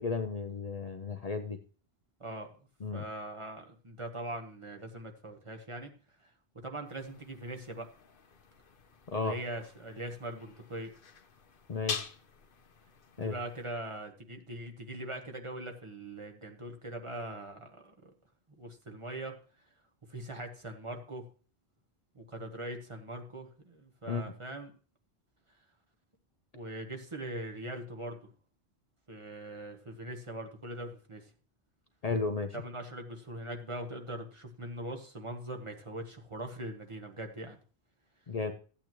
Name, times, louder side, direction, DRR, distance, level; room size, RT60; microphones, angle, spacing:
voice 1, 0.0-1.6 2.8-3.0 9.1-9.4 11.7-12.1 13.2-13.3 24.1-24.2 32.0-32.6 38.3-38.5, left 4 dB, 45° left, 7 dB, 0.6 m, -33 dB
voice 2, 2.9-5.9 6.2-6.3 6.6-7.9 9.1-10.9 13.2-18.1 18.6-19.4 20.1-21.3 22.1-24.7 26.5-28.3 29.1-31.3 32.5-37.6, right 1 dB, 30° right, 3 dB, 1.1 m, -41 dB
sound 1, 6.8-13.7, left 6 dB, 60° left, 1.1 m, -45 dB
13.5 x 8.5 x 3.0 m, 0.38 s
omnidirectional pair, 1.0 m